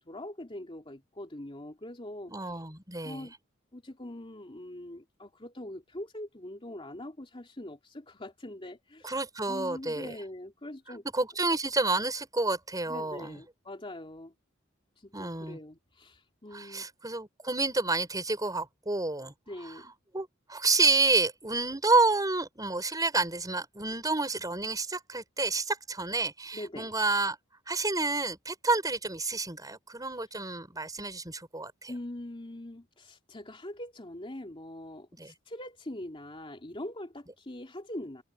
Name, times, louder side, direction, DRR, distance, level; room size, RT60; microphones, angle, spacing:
voice 1, 0.0-2.3 3.0-3.3 3.7-9.1 9.5-11.0 12.9-14.3 15.0-16.9 19.5-19.9 26.5-26.9 31.9-38.2, left 1 dB, 25° left, 2.9 m, -42 dB
voice 2, 2.3-3.3 9.0-10.2 11.1-13.4 15.1-15.6 16.5-19.3 19.6-19.7 20.1-27.4 27.7-31.9 35.2-35.3, right 3 dB, 20° right, 5.3 m, -29 dB
head